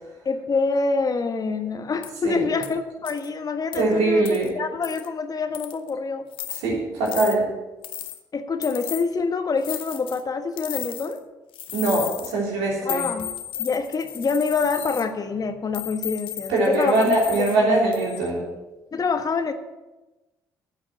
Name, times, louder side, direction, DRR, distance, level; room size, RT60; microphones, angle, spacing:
voice 1, 0.2-4.3 4.5-6.3 8.3-11.2 12.8-13.3 13.6-17.0 17.4-17.7 18.9-19.5, left 4 dB, 40° left, 8 dB, 1.2 m, -26 dB
sound 1, 2.0-2.2 2.6-2.7 3.0-3.3 3.7-3.8 4.3-4.5 4.8-5.1 5.5-5.9 6.3-6.6 7.1-7.4 7.8-8.2 8.6-9.0 9.6-10.2 10.6-11.2 11.5-12.3 12.9-15.1 15.7-17.6 17.9-18.3, left 11 dB, 60° left, 0.9 m, -34 dB
voice 2, 3.7-4.5 6.6-7.5 11.7-13.0 16.5-18.4, right 2 dB, 70° right, -1 dB, 3.2 m, -22 dB
9.6 x 8.1 x 7.8 m, 1.1 s
hypercardioid pair, 45°, 10 cm